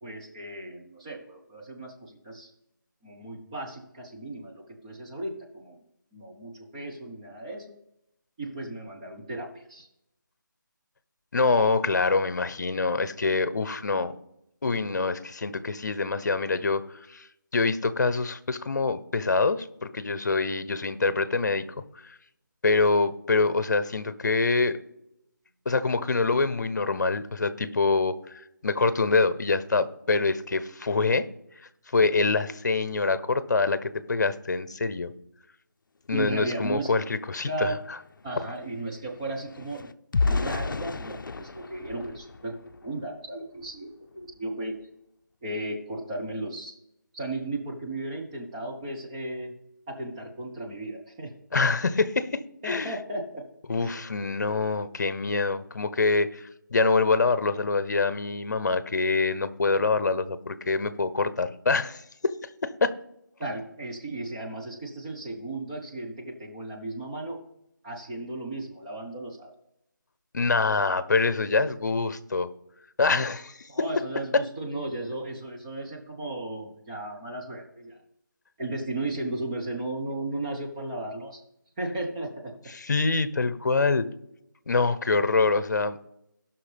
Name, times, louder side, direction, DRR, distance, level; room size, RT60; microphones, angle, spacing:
voice 1, 0.0-2.5 3.0-5.8 6.1-7.7 8.4-9.9 36.1-36.9 37.4-37.8 38.2-39.9 40.2-44.8 45.4-46.7 47.1-49.5 49.9-51.3 52.6-53.5 53.8-54.0 63.4-67.4 67.8-69.5 73.7-78.0 78.6-81.4 81.8-82.5, right 2 dB, 15° right, -1 dB, 0.9 m, -35 dB
voice 2, 11.3-14.1 14.6-16.8 17.1-17.3 17.5-21.7 22.0-22.1 22.6-24.8 25.7-31.3 31.9-35.1 36.1-37.7 51.5-52.9 53.7-62.9 70.3-72.5 73.0-73.6 74.3-74.4 82.7-84.1 84.7-86.0, left 3 dB, 60° left, 14 dB, 0.8 m, -25 dB
sound 1, 37.2-37.3 37.5-43.0 43.5-43.8 44.1-44.3, left 4 dB, 80° left, 0.5 m, -32 dB
17.5 x 5.9 x 3.4 m, 0.81 s
figure-of-eight pair, 165°, 11 cm